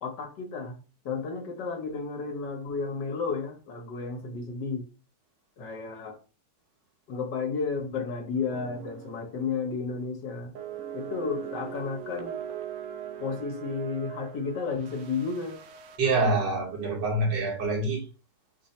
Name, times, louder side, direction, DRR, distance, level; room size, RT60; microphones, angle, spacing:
voice 1, 0.0-0.8 1.0-4.8 5.6-6.2 7.1-10.5 10.9-12.4 13.2-15.6, left 4 dB, 75° left, 1.6 m, -32 dB
sound 1, 8.5-9.3 9.6-9.8 10.5-16.0, right 9 dB, 65° right, 0.8 m, -40 dB
voice 2, 16.0-18.0, right 2 dB, 90° right, 2.2 m, -26 dB
4.4 x 2.6 x 4.3 m
omnidirectional pair, 1.9 m